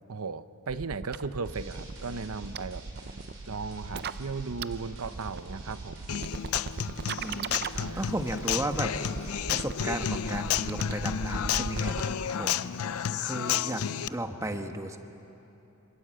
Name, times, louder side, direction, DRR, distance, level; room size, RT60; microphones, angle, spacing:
voice 1, 0.1-2.8 3.5-6.1 7.6-8.1, right 4 dB, 85° right, 12 dB, 0.8 m, -36 dB
sound 1, 0.8-12.3, right 4 dB, 50° right, 0.5 m, -38 dB
sound 2, 1.4-9.4, right 1 dB, 70° right, 5.8 m, -47 dB
Human voice / Acoustic guitar, 6.1-14.1, left 8 dB, 90° left, 0.5 m, -31 dB
voice 2, 7.2-7.6 8.0-8.9 9.5-13.8 14.1-15.0, right 1 dB, 15° right, 6 dB, 1.2 m, -34 dB
27.0 x 24.0 x 7.7 m, 3.0 s
head